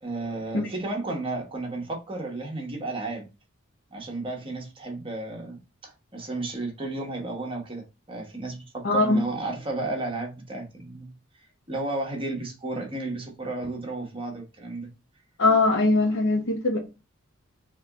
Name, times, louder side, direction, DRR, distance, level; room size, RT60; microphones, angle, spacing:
voice 1, 0.0-3.3 3.9-11.1 11.7-14.9, right 2 dB, 25° right, 1.1 m, -33 dB
voice 2, 8.8-9.2 15.4-16.8, left 2 dB, 60° left, 1.0 m, -21 dB
4.2 x 3.0 x 3.5 m
head